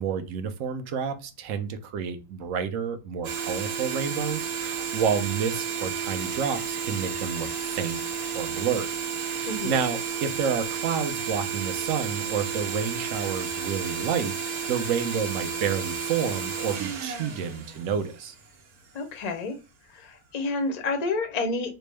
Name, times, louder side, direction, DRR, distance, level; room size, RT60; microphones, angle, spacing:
voice 1, 0.0-8.0 8.3-8.9 9.3-18.3, right 7 dB, 70° right, 0.9 m, -30 dB
sound 1, 3.2-18.5, right 7 dB, 85° right, 1.3 m, -32 dB
voice 2, 9.5-9.8 18.9-19.6 19.9-21.7, left 3 dB, 55° left, 0.4 m, -29 dB
4.4 x 2.0 x 3.2 m
omnidirectional pair, 1.5 m